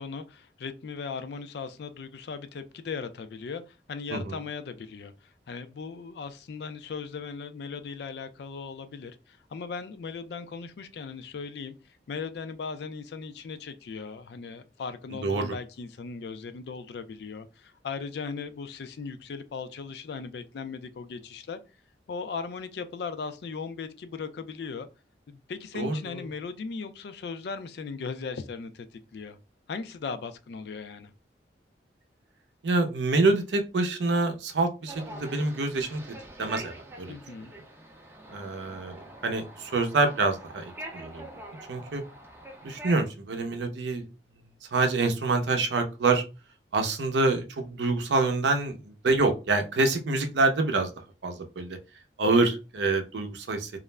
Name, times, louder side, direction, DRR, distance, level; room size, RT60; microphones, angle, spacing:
voice 1, 0.0-5.1 5.5-11.7 12.1-21.6 22.1-24.9 25.3-28.9 29.1-29.4 29.7-31.1 37.1-37.5, left 5 dB, 65° left, 0.3 m, -38 dB
voice 2, 15.1-15.5 25.7-26.0 32.6-36.0 36.4-37.1 38.3-39.0 39.2-41.3 41.7-42.0 42.6-44.0 44.7-46.2 46.7-50.9 51.2-51.8 52.2-53.7, right 3 dB, 75° right, 0.5 m, -26 dB
sound 1, 34.9-43.0, right 1 dB, 10° right, 0.4 m, -45 dB
2.4 x 2.0 x 3.2 m
head